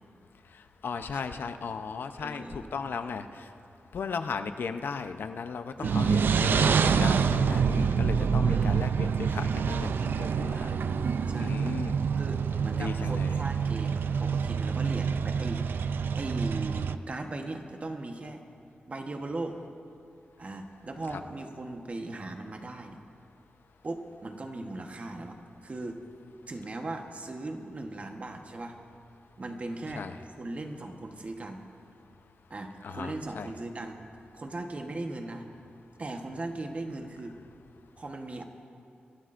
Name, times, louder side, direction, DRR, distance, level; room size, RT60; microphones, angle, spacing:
voice 1, 0.8-3.4 3.9-10.7 11.4-12.0 12.7-13.4 21.1-21.2 30.0-30.2 32.8-33.5, left 5 dB, 80° left, 9 dB, 0.6 m, -36 dB
voice 2, 2.2-2.7 5.8-6.2 8.5-8.7 10.5-10.9 11.3-11.6 12.2-18.4 18.9-19.6 20.4-23.0 23.8-26.0 26.5-28.8 29.4-30.0 30.4-31.6 32.5-34.0 34.3-35.4 36.0-37.3 38.0-38.4, right 2 dB, 40° right, 4 dB, 1.1 m, -38 dB
sound 1, 5.8-17.0, right 6 dB, 80° right, 0.4 m, -27 dB
25.0 x 12.5 x 2.6 m, 2.6 s
wide cardioid pair, 95°, 4 cm